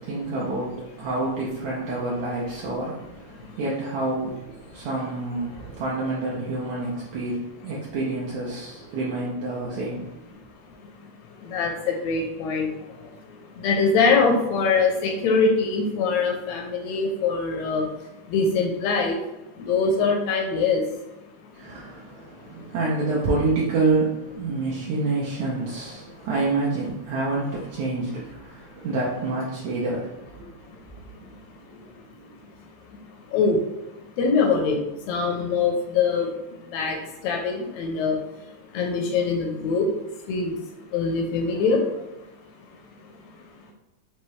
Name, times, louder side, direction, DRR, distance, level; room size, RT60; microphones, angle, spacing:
voice 1, 0.0-10.3 21.5-30.8 31.2-31.3 31.6-32.4, right 3 dB, 75° right, -5 dB, 1.8 m, -28 dB
voice 2, 11.5-12.7 13.6-17.9 18.3-19.2 19.7-20.8 33.3-33.6 34.2-34.8 35.1-36.3 36.7-37.0 37.2-38.2 38.7-39.9 40.3-40.5 40.9-41.8, left 4 dB, 80° left, 2 dB, 1.6 m, -23 dB
5.5 x 2.5 x 3.1 m, 0.96 s
omnidirectional pair, 3.5 m